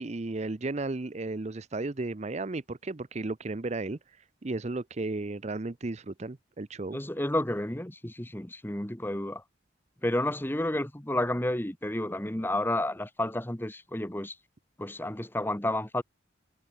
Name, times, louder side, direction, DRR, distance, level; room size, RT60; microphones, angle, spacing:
voice 1, 0.0-4.0 4.4-7.0, right 2 dB, 35° right, 0.6 m, -34 dB
voice 2, 6.9-9.4 10.0-14.3 14.8-16.0, left 1 dB, 10° left, 1.3 m, -31 dB
head